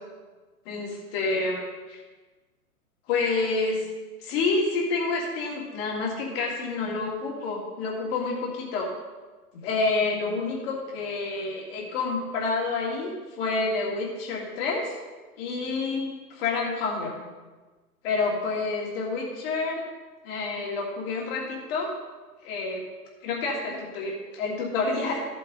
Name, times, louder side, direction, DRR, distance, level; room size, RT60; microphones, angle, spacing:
voice 1, 0.6-1.6 1.9-2.0 3.1-3.8 4.2-8.9 9.6-14.9 15.4-17.2 18.0-19.8 20.2-21.9 22.4-22.8 23.2-25.2, left 3 dB, 40° left, -2 dB, 3.0 m, -28 dB
14.0 x 7.8 x 4.0 m, 1.3 s
figure-of-eight pair, 115°, 46 cm